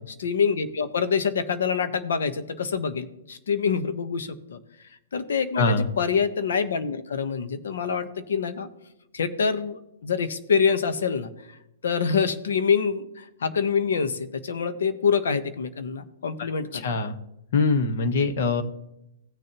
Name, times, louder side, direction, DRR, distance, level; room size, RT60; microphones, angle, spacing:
voice 1, 0.2-4.6 5.1-8.7 9.1-11.3 11.8-16.9, left 6 dB, 80° left, 10 dB, 1.0 m, -26 dB
voice 2, 5.6-5.9 16.4-16.5 16.7-17.2 17.5-18.6, left 3 dB, 55° left, 10 dB, 1.1 m, -23 dB
16.5 x 6.7 x 3.0 m, 0.84 s
hypercardioid pair, 155°, 0 cm